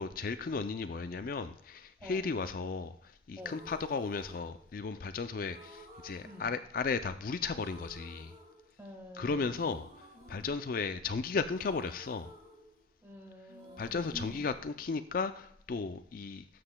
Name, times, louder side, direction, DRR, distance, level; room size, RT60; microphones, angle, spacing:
voice 1, 0.0-8.3 9.1-12.3 13.8-16.5, left 4 dB, 50° left, 0.4 m, -35 dB
sound 1, 3.4-5.0 5.5-7.2 7.5-9.1 9.5-13.2 13.5-15.5, equal, 40° right, 2.0 m, -55 dB
voice 2, 6.2-6.5 8.8-9.6 13.0-14.4, equal, 10° right, 1.5 m, -48 dB
13.0 x 7.6 x 2.2 m
head